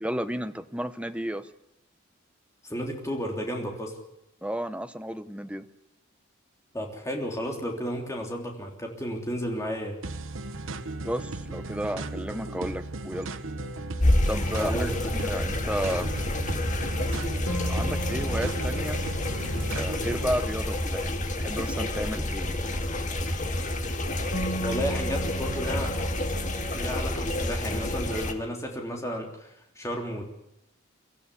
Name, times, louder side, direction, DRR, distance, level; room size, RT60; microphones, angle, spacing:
voice 1, 0.0-1.5 4.4-5.7 11.0-13.3 14.3-16.1 17.7-19.0 19.7-22.8, equal, 5° right, 9 dB, 0.9 m, -33 dB
voice 2, 2.6-3.9 6.7-10.0 14.6-14.9 15.3-15.4 24.6-25.9 26.6-30.2, equal, 15° left, 1 dB, 3.4 m, -33 dB
sound 1, 10.0-20.3, right 2 dB, 70° right, 1.2 m, -36 dB
sound 2, 13.6-15.0 17.5-21.9 24.3-28.6, right 1 dB, 80° left, 3.4 m, -39 dB
sound 3, 14.0-28.3, left 1 dB, 35° left, 1.9 m, -29 dB
24.0 x 14.0 x 10.0 m, 0.82 s
head